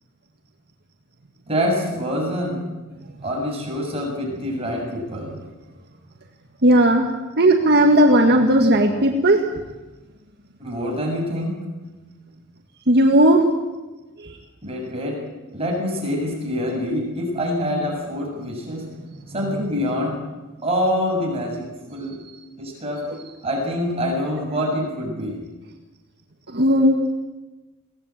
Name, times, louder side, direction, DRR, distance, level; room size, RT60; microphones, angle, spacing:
voice 1, 1.5-2.6 3.2-5.3 10.6-11.6 14.6-15.2 15.5-18.9 19.3-20.2 20.6-21.6 21.9-22.2 22.6-23.0 23.4-25.4, equal, 25° right, -1 dB, 7.2 m, -25 dB
voice 2, 6.6-7.1 7.4-9.4 12.9-13.4 14.2-14.4 23.1-23.3 26.5-27.0, right 1 dB, 50° right, 2 dB, 1.9 m, -16 dB
22.5 x 18.5 x 9.0 m, 1.1 s
head